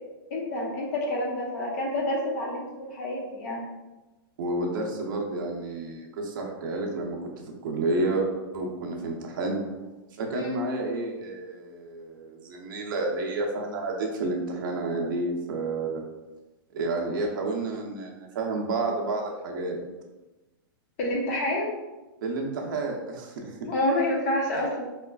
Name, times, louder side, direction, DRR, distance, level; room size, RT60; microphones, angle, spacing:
voice 1, 0.3-3.6 10.3-10.6 21.0-21.8 23.6-24.8, left 1 dB, 40° left, -3 dB, 0.9 m, -28 dB
voice 2, 4.4-7.2 7.6-8.3 8.5-9.6 10.2-16.0 16.7-19.8 22.2-23.7, right 2 dB, 55° right, 0 dB, 0.7 m, -30 dB
4.9 x 2.4 x 2.3 m, 1.1 s
supercardioid pair, 170°, 12 cm